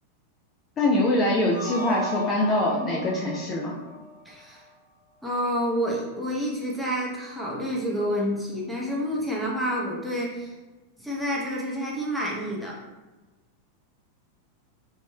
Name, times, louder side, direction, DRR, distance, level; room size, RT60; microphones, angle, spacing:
voice 1, 0.8-3.7, left 1 dB, 25° left, -4 dB, 0.4 m, -23 dB
sound 1, 1.5-4.6, left 1 dB, 70° right, 0.8 m, -36 dB
voice 2, 4.2-4.7 5.2-10.5 11.0-12.8, equal, 5° right, -5 dB, 0.7 m, -29 dB
3.4 x 2.5 x 2.2 m, 1.2 s
figure-of-eight pair, 90°, 0 cm